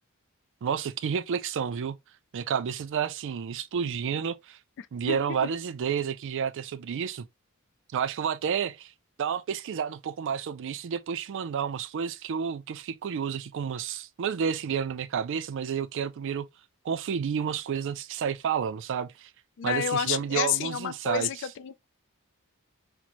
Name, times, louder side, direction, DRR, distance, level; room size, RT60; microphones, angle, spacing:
voice 1, 0.6-2.0 2.3-4.6 4.9-7.3 7.9-8.9 9.2-16.5 16.8-19.3 19.6-21.3, right 7 dB, 60° right, 0.4 m, -30 dB
voice 2, 4.8-5.6 19.6-21.9, left 9 dB, 55° left, 0.3 m, -30 dB
4.2 x 2.1 x 2.9 m
head